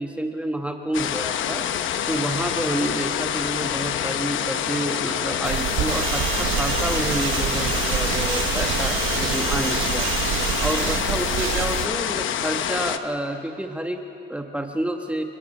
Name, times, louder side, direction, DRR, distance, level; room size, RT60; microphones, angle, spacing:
voice 1, 0.0-10.1 10.6-15.2, right 1 dB, 5° right, 4 dB, 1.3 m, -29 dB
sound 1, 0.9-13.0, left 9 dB, 75° left, 1.0 m, -26 dB
sound 2, 5.4-11.9, right 11 dB, 90° right, 0.9 m, -26 dB
29.5 x 21.0 x 5.5 m, 2.9 s
cardioid pair, 90°, 20 cm